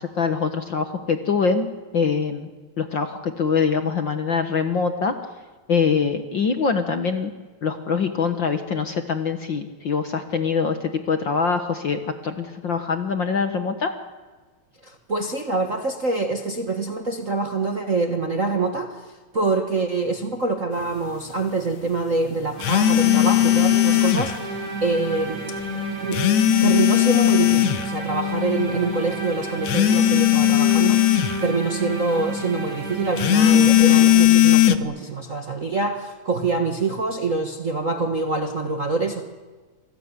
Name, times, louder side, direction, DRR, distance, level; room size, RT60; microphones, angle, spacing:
voice 1, 0.0-1.7 1.9-2.5 2.8-5.2 5.7-7.3 7.6-13.9, left 5 dB, 50° left, 8 dB, 1.7 m, -24 dB
voice 2, 14.8-18.9 19.3-25.4 26.0-26.2 26.6-39.2, right 3 dB, 35° right, 5 dB, 1.4 m, -25 dB
sound 1, 22.6-24.4 26.1-27.8 29.7-31.4 33.2-34.8, left 13 dB, 75° left, 2.4 m, -17 dB
sound 2, 22.6-34.1, equal, 75° right, 9.2 m, -30 dB
27.0 x 20.0 x 9.8 m, 1.4 s
omnidirectional pair, 3.4 m